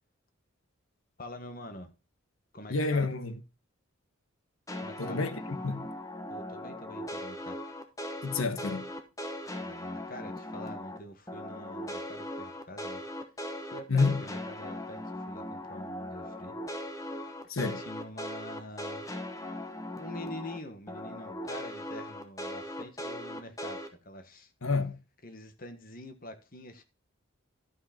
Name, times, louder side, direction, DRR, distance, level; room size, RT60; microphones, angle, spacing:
voice 1, 1.2-1.9 2.5-3.1 4.8-5.2 6.3-7.6 9.6-13.0 13.6-16.6 17.6-19.1 19.5-24.5 25.2-26.8, left 1 dB, 45° left, 1.4 m, -45 dB
voice 2, 2.7-3.4 5.0-5.9 8.2-8.9 13.9-14.2 17.5-17.8 24.6-25.0, left 3 dB, 75° left, 1.3 m, -29 dB
sound 1, 4.7-11.0 11.3-20.6 20.9-23.9, left 1 dB, 15° left, 1.2 m, -39 dB
12.5 x 5.9 x 4.3 m
head